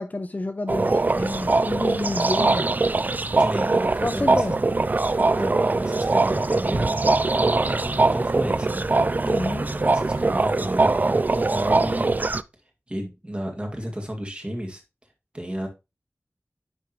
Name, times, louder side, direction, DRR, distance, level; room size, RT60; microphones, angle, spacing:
voice 1, 0.0-2.7 4.0-4.6 9.2-9.7, left 2 dB, 35° left, 0.5 m, -29 dB
sound 1, 0.7-12.4, right 3 dB, 40° right, 0.3 m, -22 dB
voice 2, 3.4-4.7 5.3-8.8 9.6-12.1 12.9-14.8 15.3-15.7, equal, 25° right, 2.0 m, -32 dB
sound 2, 5.8-10.9, right 2 dB, 80° right, 1.0 m, -36 dB
10.0 x 3.6 x 2.9 m
wide cardioid pair, 70°, 5 cm